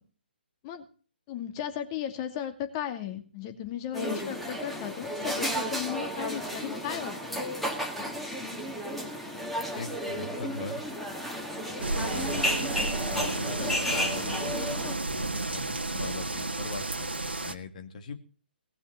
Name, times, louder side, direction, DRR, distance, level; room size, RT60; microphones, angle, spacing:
voice 1, 1.3-7.4, left 10 dB, 30° left, 6 dB, 2.5 m, -35 dB
sound 1, 3.9-15.0, equal, ahead, 2.2 m, -33 dB
voice 2, 9.7-10.8 11.7-12.6 13.0-14.6 15.1-18.2, left 4 dB, 45° left, 8 dB, 2.4 m, -41 dB
sound 2, 11.8-17.5, right 2 dB, 80° right, 1.7 m, -32 dB
19.0 x 7.0 x 8.4 m, 0.39 s
figure-of-eight pair, 135°, 6 cm